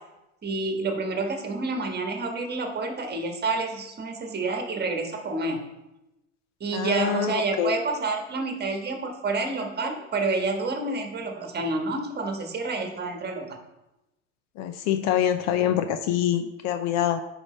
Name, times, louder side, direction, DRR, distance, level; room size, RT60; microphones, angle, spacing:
voice 1, 0.4-5.6 6.6-13.6, right 3 dB, 25° right, 3 dB, 1.5 m, -29 dB
voice 2, 6.7-7.7 14.6-17.2, left 10 dB, 45° left, 9 dB, 0.6 m, -25 dB
11.0 x 4.9 x 3.3 m, 0.96 s
hypercardioid pair, 85°, 38 cm